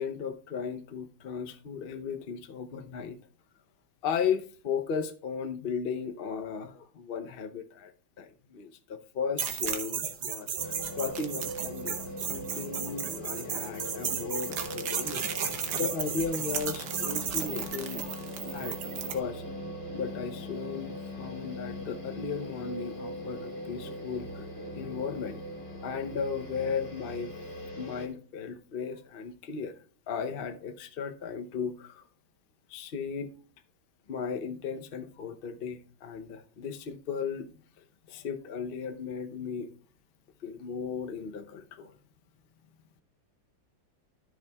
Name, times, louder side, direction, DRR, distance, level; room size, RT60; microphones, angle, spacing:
voice 1, 0.0-3.2 4.0-7.9 8.2-15.2 15.8-18.0 18.5-18.8 19.1-19.4 19.9-24.4 24.7-25.4 25.8-27.3 27.8-29.8 30.1-32.0 32.7-33.3 34.1-39.7 40.4-42.0, left 6 dB, 60° left, 7 dB, 0.6 m, -36 dB
sound 1, 9.4-19.2, right 7 dB, 65° right, 1.5 m, -34 dB
sound 2, 10.6-28.1, left 1 dB, 20° left, 0.9 m, -40 dB
13.0 x 6.4 x 2.3 m, 0.42 s
omnidirectional pair, 2.1 m